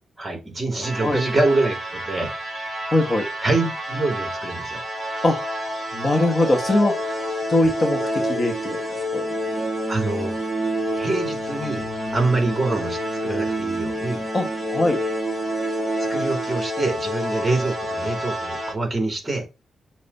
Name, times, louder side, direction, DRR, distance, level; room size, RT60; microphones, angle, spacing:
voice 1, 0.2-2.3 3.4-4.8 9.9-10.4 10.9-14.3 16.1-19.4, right 2 dB, 20° right, 2.8 m, -25 dB
sound 1, 0.8-18.7, equal, 5° left, 1.9 m, -28 dB
voice 2, 2.9-3.3 5.2-5.4 5.9-7.0 7.5-8.8 9.1-9.3 14.3-15.0, left 1 dB, 30° left, 1.4 m, -21 dB
7.1 x 3.1 x 5.5 m
cardioid pair, 105°, 0 cm